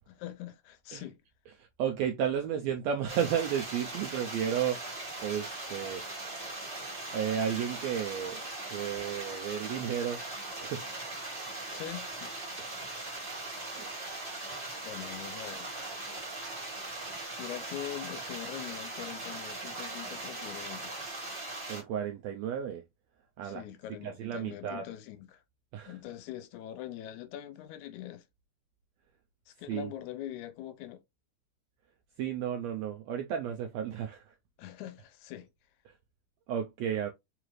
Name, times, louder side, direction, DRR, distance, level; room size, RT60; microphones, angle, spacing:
voice 1, 0.1-1.2 11.7-12.3 14.8-15.7 17.4-20.9 23.4-25.4 25.9-28.2 29.5-31.0 34.6-35.5, left 12 dB, 80° left, 1.9 m, -43 dB
voice 2, 1.6-4.8 5.2-6.0 7.1-8.4 8.7-10.8 12.6-12.7 13.7-13.9 21.7-22.8 23.4-23.6 24.0-24.8 25.7-26.0 29.7-29.9 32.2-34.3 35.9-36.0 36.5-37.1, right 9 dB, 80° right, 1.5 m, -33 dB
sound 1, 3.1-21.8, right 2 dB, 65° right, 0.5 m, -40 dB
4.8 x 2.4 x 3.0 m
omnidirectional pair, 3.6 m